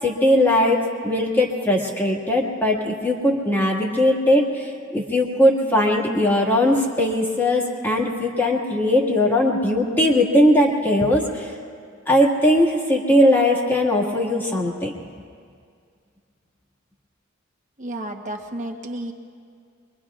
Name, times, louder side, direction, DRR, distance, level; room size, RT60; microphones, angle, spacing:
voice 1, 0.0-11.5 12.1-14.9, left 1 dB, 10° left, -2 dB, 1.9 m, -19 dB
voice 2, 17.8-19.1, right 1 dB, 35° right, 2 dB, 1.2 m, -31 dB
24.0 x 23.5 x 2.5 m, 2.2 s
head